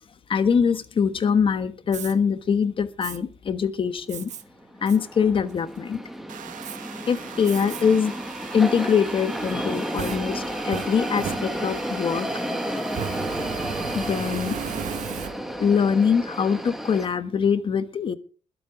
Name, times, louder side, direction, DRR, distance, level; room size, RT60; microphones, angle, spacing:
voice 1, 0.3-4.3 4.8-6.0 7.1-8.1 8.5-12.3 13.9-14.5 15.6-18.1, left 6 dB, 40° left, 11 dB, 1.3 m, -23 dB
Fire, 1.8-2.1 3.0-3.2 4.1-4.4 4.9-5.0 5.5-5.9 6.6-6.8 7.4-7.8 8.3-8.4 9.5-11.9 12.8-15.7, right 8 dB, 60° right, 1.1 m, -35 dB
sound 1, 4.4-17.1, equal, ahead, 1.6 m, -32 dB
sound 2, 6.3-14.9, right 10 dB, 80° right, 1.3 m, -42 dB
21.5 x 7.8 x 4.8 m, 0.38 s
wide cardioid pair, 150°, 13 cm